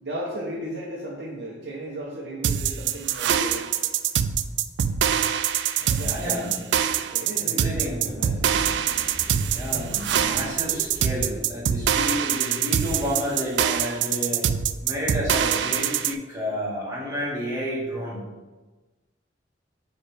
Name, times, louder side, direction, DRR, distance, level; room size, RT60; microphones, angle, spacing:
voice 1, 0.0-3.6 5.8-6.6 7.1-9.1, right 1 dB, 70° right, -5 dB, 0.9 m, -36 dB
sound 1, 2.4-16.1, right 9 dB, 85° right, 0.3 m, -24 dB
voice 2, 5.9-6.6 7.1-8.1 9.5-14.5 14.8-18.2, equal, 20° right, -7 dB, 2.0 m, -31 dB
sound 2, 8.0-12.3, right 1 dB, 40° right, 0.6 m, -39 dB
8.5 x 3.4 x 3.4 m, 1.2 s
head